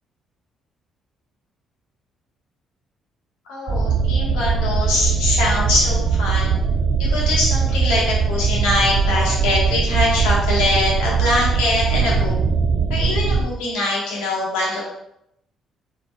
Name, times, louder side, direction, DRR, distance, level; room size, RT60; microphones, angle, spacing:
voice 1, 3.5-6.5 7.0-12.3 12.9-14.8, left 2 dB, 80° left, -5 dB, 1.6 m, -22 dB
sound 1, 3.7-13.4, right 5 dB, 60° right, 0.5 m, -20 dB
4.5 x 4.1 x 2.4 m, 0.77 s
hypercardioid pair, 50°, 0 cm